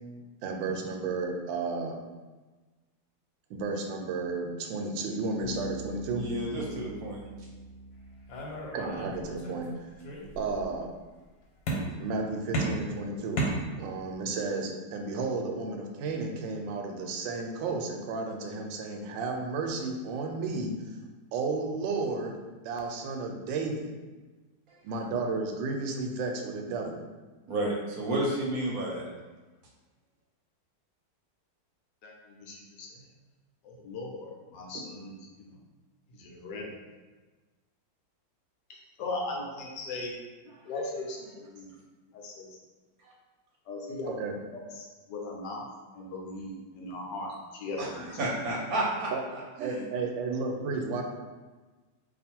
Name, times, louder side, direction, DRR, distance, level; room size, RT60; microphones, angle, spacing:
voice 1, 0.4-2.0 3.5-6.2 8.7-9.9 10.4-10.9 11.7-13.5 13.8-21.0 21.3-22.3 22.6-23.9 24.8-27.0 44.2-44.3 49.1-49.2 49.6-51.0, right 3 dB, 85° right, 3 dB, 1.3 m, -33 dB
Bass guitar, 5.4-9.1, right 1 dB, 50° left, 1.2 m, -42 dB
voice 2, 6.1-7.5 24.7-24.8 27.5-29.1 43.0-43.1 47.8-49.8, right 1 dB, 65° right, -3 dB, 1.0 m, -32 dB
sound 1, 8.3-9.7 10.0-10.7 11.7-12.2 12.5-14.1, right 1 dB, 90° left, 1.5 m, -33 dB
voice 3, 32.0-33.0 33.6-35.5 36.1-36.8 38.7-40.2 40.6-41.7 42.1-42.6 43.7-44.2 44.5-45.6 45.9-48.5, left 2 dB, 75° left, -1 dB, 1.2 m, -38 dB
2.9 x 2.5 x 4.2 m, 1.3 s
omnidirectional pair, 2.0 m